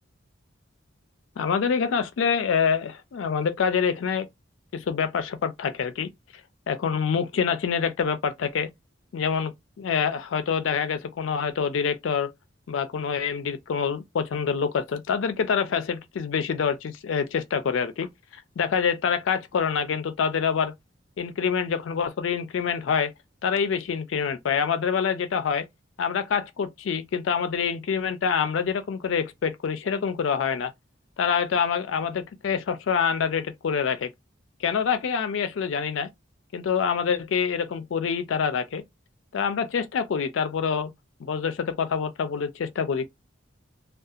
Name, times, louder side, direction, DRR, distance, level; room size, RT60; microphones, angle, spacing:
voice 1, 1.4-4.3 4.7-6.1 6.7-8.7 9.1-12.3 12.7-18.1 18.3-20.7 21.2-23.1 23.4-25.7 26.0-30.7 31.2-34.1 34.6-36.1 36.5-38.8 39.3-40.9 41.2-43.1, left 6 dB, 80° left, 0.4 m, -26 dB
2.7 x 2.2 x 2.4 m
head